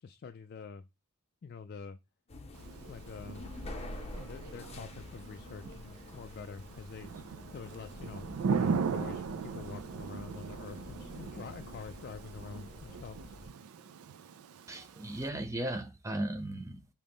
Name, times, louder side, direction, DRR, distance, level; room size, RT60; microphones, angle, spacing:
voice 1, 0.0-0.9 1.4-2.0 2.9-3.5 3.8-5.8 6.1-7.2 7.5-13.2, left 5 dB, 45° left, 0.3 m, -46 dB
sound 1, 2.3-13.5, left 1 dB, 30° left, 0.7 m, -47 dB
Thunder / Rain, 2.5-15.3, right 5 dB, 75° right, 0.4 m, -39 dB
voice 2, 14.7-16.9, right 1 dB, 15° right, 0.6 m, -36 dB
5.2 x 2.9 x 3.5 m
head